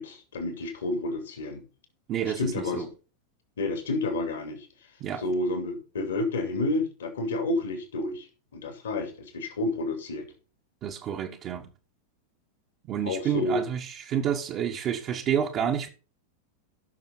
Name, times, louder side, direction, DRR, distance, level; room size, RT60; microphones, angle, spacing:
voice 1, 0.0-1.6 2.2-2.9 3.6-4.7 5.2-10.2 13.0-13.6, left 2 dB, 65° left, 3.3 m, -30 dB
voice 2, 2.1-2.9 5.0-5.2 10.8-11.7 12.9-15.9, right 9 dB, 35° right, 1.6 m, -29 dB
16.5 x 6.7 x 4.2 m
figure-of-eight pair, 90°, 0 cm